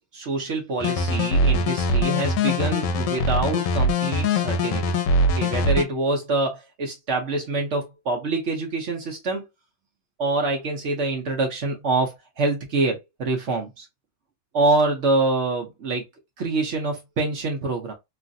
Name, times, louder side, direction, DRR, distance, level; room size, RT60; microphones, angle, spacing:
voice 1, 0.0-5.0 5.3-9.5 10.2-13.9 14.5-16.1 16.4-17.9, right 3 dB, 65° right, 0.7 m, -25 dB
sound 1, 0.8-5.8, left 1 dB, 80° left, 1.2 m, -22 dB
3.1 x 2.4 x 2.6 m
omnidirectional pair, 1.9 m